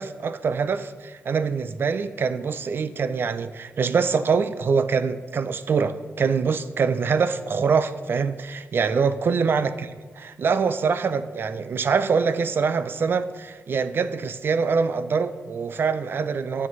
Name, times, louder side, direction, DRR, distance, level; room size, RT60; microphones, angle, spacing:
voice 1, 0.0-16.7, right 5 dB, 50° right, 0.4 m, -24 dB
8.5 x 7.1 x 3.1 m
cardioid pair, 105°, 5 cm